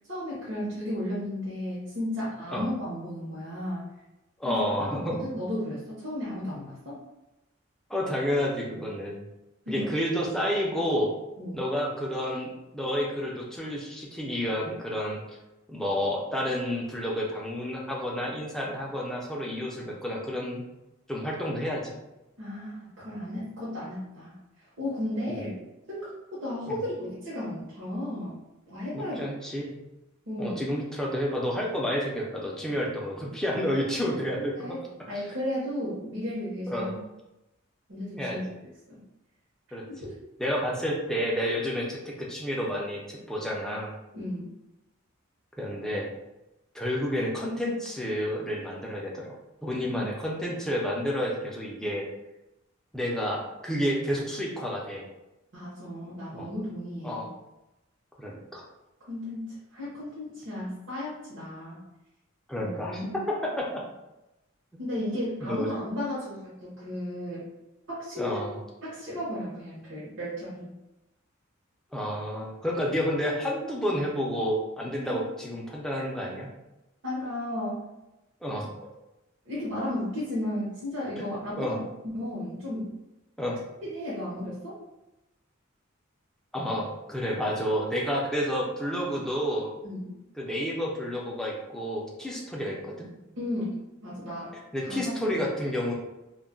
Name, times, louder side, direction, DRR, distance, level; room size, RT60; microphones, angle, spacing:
voice 1, 0.1-3.8 4.4-4.6 5.2-7.0 9.6-9.9 11.4-11.6 22.4-24.3 24.8-25.5 25.9-26.1 26.4-28.3 28.7-29.2 30.3-30.6 33.5-33.9 34.3-37.0 37.9-38.4 38.9-39.0 40.0-40.1 44.1-44.5 49.9-50.1 55.5-57.3 59.1-61.8 62.6-63.2 64.8-67.5 67.9-68.4 68.8-70.7 75.0-75.1 77.0-77.8 79.5-81.8 82.1-82.9 83.8-84.8 89.8-90.1 93.4-94.5 94.8-95.4, left 1 dB, 60° right, -9 dB, 0.8 m, -34 dB
voice 2, 4.4-5.2 7.9-9.2 9.7-11.1 11.5-15.4 15.7-20.6 21.1-21.9 26.7-26.8 28.9-29.7 30.4-34.8 36.7-36.9 38.2-38.4 39.7-39.8 40.4-44.0 45.6-46.1 46.7-49.3 49.6-52.1 52.9-55.0 56.3-56.5 57.0-57.3 58.2-58.6 62.5-63.1 63.7-63.8 65.4-65.7 68.2-68.6 71.9-76.5 78.4-78.7 81.2-81.8 83.4-83.6 86.5-89.7 90.4-93.1 94.7-96.0, equal, 5° left, -3 dB, 0.4 m, -30 dB
2.3 x 2.1 x 3.7 m, 0.97 s
head